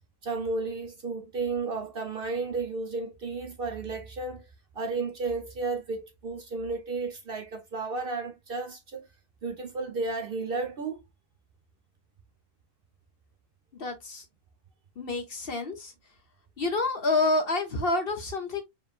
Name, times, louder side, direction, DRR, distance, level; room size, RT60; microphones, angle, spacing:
voice 1, 0.2-4.5 4.7-9.1 9.4-11.0, right 3 dB, 50° right, 0.9 m, -33 dB
voice 2, 13.8-14.2 15.0-15.9 16.6-18.6, left 2 dB, 50° left, 1.1 m, -28 dB
4.9 x 3.1 x 2.5 m
omnidirectional pair, 1.4 m